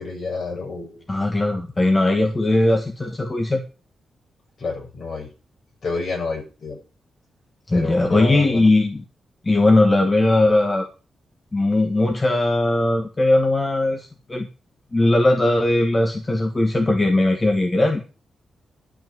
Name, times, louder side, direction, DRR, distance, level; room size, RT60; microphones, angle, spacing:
voice 1, 0.0-1.0 4.6-5.3 5.8-6.8 7.7-8.7, left 4 dB, 55° left, -1 dB, 7.1 m, -29 dB
voice 2, 1.1-3.6 7.7-9.0 9.4-10.9 11.5-14.5 14.9-18.1, left 2 dB, 25° left, 4 dB, 1.5 m, -19 dB
12.0 x 5.9 x 7.6 m, 0.34 s
cardioid pair, 105°, 0 cm